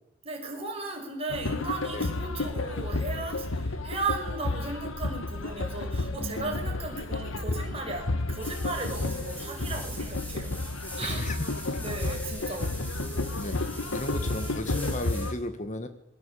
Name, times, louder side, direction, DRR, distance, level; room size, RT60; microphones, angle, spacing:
voice 1, 0.2-10.6 11.0-11.3 11.8-12.7 13.4-13.6, right 3 dB, 30° right, 2 dB, 6.4 m, -36 dB
sound 1, 1.3-15.3, left 2 dB, 70° left, 1.5 m, -32 dB
voice 2, 6.2-6.5 11.0-11.4 11.7-12.1 13.3-13.6 13.9-15.9, left 1 dB, 35° left, 9 dB, 1.6 m, -35 dB
sound 2, 8.4-15.3, equal, 10° left, 6.6 m, -42 dB
27.0 x 22.0 x 8.6 m, 0.86 s
head